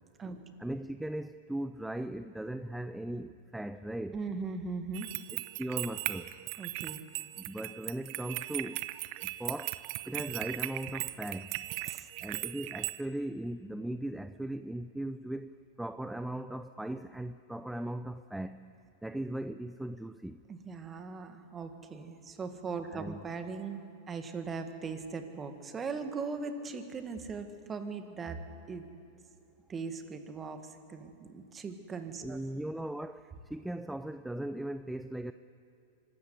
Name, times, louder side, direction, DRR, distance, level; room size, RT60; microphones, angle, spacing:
voice 1, 0.6-4.2 5.3-6.3 7.4-8.8 9.2-9.8 10.1-11.5 12.2-18.7 19.0-20.4 22.9-23.2 32.2-35.3, right 1 dB, 5° right, 11 dB, 0.5 m, -38 dB
voice 2, 4.1-5.1 6.6-7.0 11.9-12.1 20.5-28.9 29.7-30.6 30.9-32.4, right 4 dB, 25° right, 7 dB, 1.8 m, -39 dB
sound 1, 4.9-13.0, right 18 dB, 55° right, 0.7 m, -38 dB
24.5 x 13.0 x 8.2 m, 2.6 s
hypercardioid pair, 105°, 0 cm